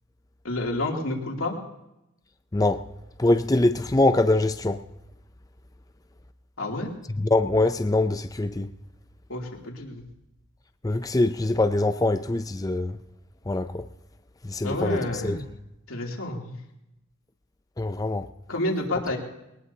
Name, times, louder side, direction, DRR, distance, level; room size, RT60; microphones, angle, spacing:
voice 1, 0.4-1.6 6.6-6.9 9.3-10.0 14.6-15.4 15.9-16.6 18.5-19.2, left 1 dB, 70° left, 2.9 m, -29 dB
voice 2, 2.5-2.9 3.2-4.8 7.1-8.7 10.8-13.0 13.5-13.9 14.4-15.5 17.8-18.3, left 2 dB, 15° left, 0.5 m, -23 dB
22.0 x 19.0 x 2.8 m
head